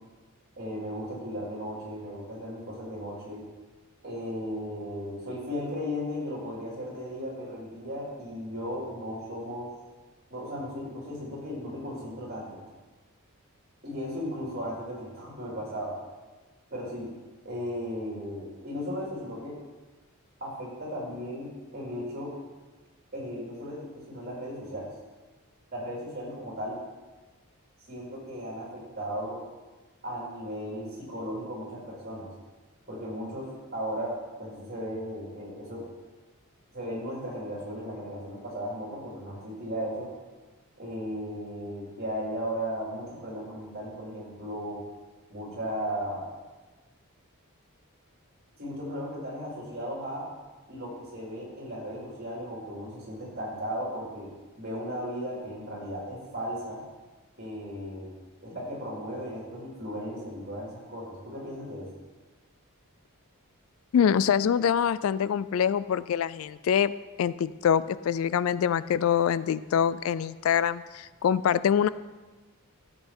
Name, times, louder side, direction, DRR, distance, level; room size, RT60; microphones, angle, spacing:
voice 1, 0.6-3.4 4.0-9.7 10.3-12.6 13.8-16.0 16.7-17.1 17.4-19.6 20.4-22.4 23.1-24.9 25.7-26.8 27.9-29.4 30.0-32.3 32.9-35.8 36.7-40.1 40.8-44.8 45.3-46.3 48.6-50.3 50.7-54.3 54.6-56.8 57.4-58.1 58.4-61.9, equal, 45° right, -4 dB, 4.1 m, -36 dB
voice 2, 63.9-66.9 67.2-71.9, left 8 dB, 65° left, 17 dB, 0.3 m, -25 dB
13.5 x 7.8 x 4.5 m, 1.3 s
head